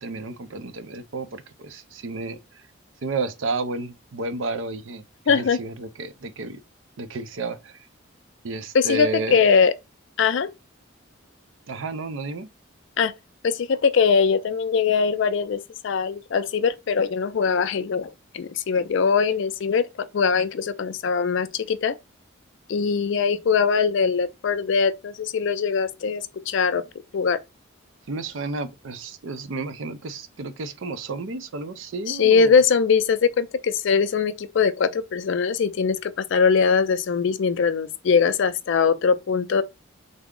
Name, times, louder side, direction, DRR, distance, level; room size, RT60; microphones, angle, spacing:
voice 1, 0.0-2.6 3.0-6.6 7.0-7.8 8.4-9.4 11.7-12.5 26.7-26.8 28.1-32.6, right 3 dB, 65° right, 0.5 m, -32 dB
voice 2, 5.3-5.6 8.7-9.7 10.2-10.5 13.0-13.1 13.4-15.6 15.8-19.9 20.1-22.0 22.7-26.8 27.1-27.4 32.1-39.6, left 5 dB, 60° left, 0.3 m, -21 dB
3.4 x 2.0 x 3.6 m
head